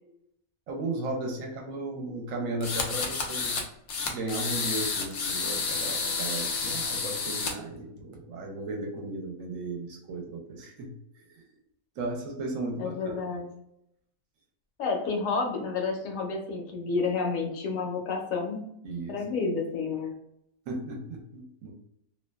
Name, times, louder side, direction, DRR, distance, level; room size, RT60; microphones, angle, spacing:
voice 1, 0.7-3.6 4.0-11.4 12.0-13.1 18.8-19.2 20.7-21.7, right 2 dB, 70° right, 2 dB, 0.9 m, -35 dB
sound 1, 2.6-3.6 3.9-7.5, left 4 dB, 90° left, 0.5 m, -30 dB
voice 2, 12.8-13.5 14.8-18.7 19.1-20.1, left 4 dB, 65° left, 1 dB, 1.0 m, -30 dB
2.7 x 2.2 x 2.2 m, 0.77 s
omnidirectional pair, 1.6 m